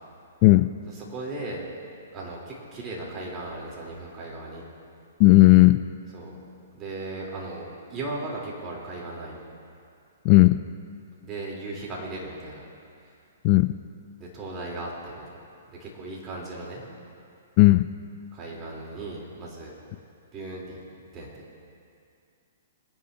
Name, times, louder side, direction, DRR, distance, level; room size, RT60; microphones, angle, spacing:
voice 1, 0.9-1.6 2.1-4.7 6.1-6.3 6.7-9.4 11.2-12.6 14.2-15.2 15.8-16.8 18.3-19.8 20.3-20.8 21.1-21.3, right 2 dB, 25° right, -4 dB, 3.7 m, -36 dB
voice 2, 5.2-5.8 10.2-10.6 13.4-13.7 17.6-17.9, left 20 dB, 40° left, 11 dB, 0.4 m, -15 dB
25.0 x 10.5 x 2.9 m, 2.4 s
hypercardioid pair, 130°, 0 cm